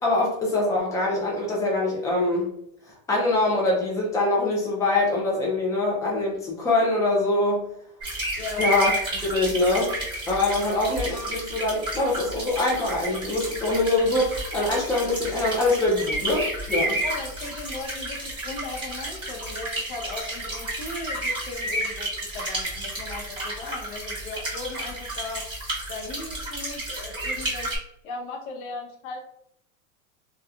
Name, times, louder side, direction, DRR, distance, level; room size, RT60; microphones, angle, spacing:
voice 1, 0.0-2.5 3.1-7.7 8.6-8.9 9.2-9.9 10.3-17.0, left 2 dB, 10° left, -3 dB, 0.5 m, -24 dB
sound 1, 8.0-27.8, right 1 dB, 10° right, 1.1 m, -31 dB
voice 2, 8.4-8.8 10.7-10.8 17.0-25.4 25.9-27.8 28.0-29.2, left 3 dB, 80° left, 0 dB, 0.9 m, -37 dB
2.8 x 2.4 x 2.3 m, 0.73 s
supercardioid pair, 130°, 43 cm